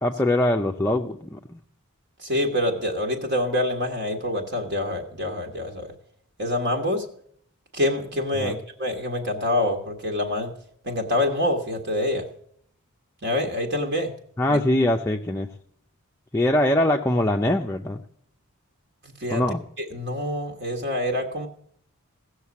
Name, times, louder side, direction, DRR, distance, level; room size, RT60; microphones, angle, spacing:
voice 1, 0.0-1.6 8.4-8.6 14.4-15.5 16.3-18.0 19.3-19.6, left 1 dB, 10° left, 2 dB, 0.6 m, -22 dB
voice 2, 2.2-5.9 6.4-7.0 7.7-10.5 10.8-12.2 13.2-14.1 14.5-14.6 19.2-19.4 19.8-21.5, left 1 dB, 50° right, 4 dB, 1.6 m, -26 dB
17.0 x 6.6 x 8.4 m, 0.63 s
head